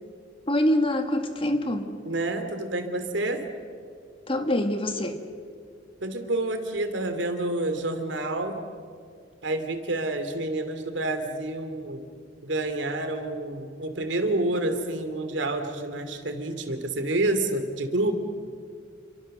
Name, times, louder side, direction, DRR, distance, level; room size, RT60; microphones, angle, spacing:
voice 1, 0.5-2.0 4.3-5.2, left 1 dB, 30° left, 6 dB, 2.0 m, -25 dB
voice 2, 2.1-3.4 6.0-8.6 9.4-12.0 12.4-18.1, right 2 dB, 75° right, 8 dB, 2.8 m, -28 dB
29.0 x 25.5 x 6.7 m, 2.2 s
head